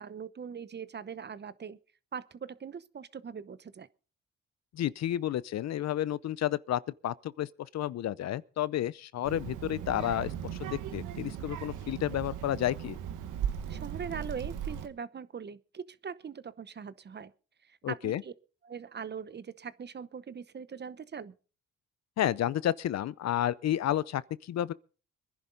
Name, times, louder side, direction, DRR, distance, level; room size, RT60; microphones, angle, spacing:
voice 1, 0.0-1.8 2.1-3.9 13.7-17.3 17.7-18.3 18.6-21.3, right 6 dB, 35° right, 0.9 m, -41 dB
voice 2, 4.7-10.3 10.6-13.0 17.8-18.2 22.2-24.7, left 12 dB, 60° left, 0.7 m, -31 dB
Child speech kid speaking, 9.2-14.9, right 9 dB, 90° right, 1.6 m, -37 dB
24.5 x 11.0 x 3.9 m
cardioid pair, 90°, 30 cm